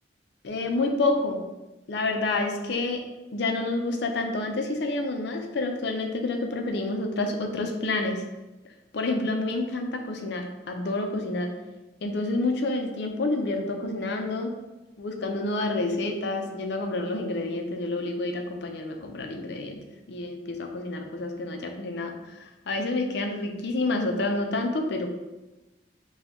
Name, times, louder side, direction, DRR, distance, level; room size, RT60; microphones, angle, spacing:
voice 1, 0.4-1.4 1.9-3.0 3.3-8.2 8.9-11.5 12.0-14.5 15.0-19.8 20.1-25.1, left 2 dB, 65° left, 3 dB, 0.5 m, -28 dB
5.1 x 2.3 x 3.0 m, 1.1 s
head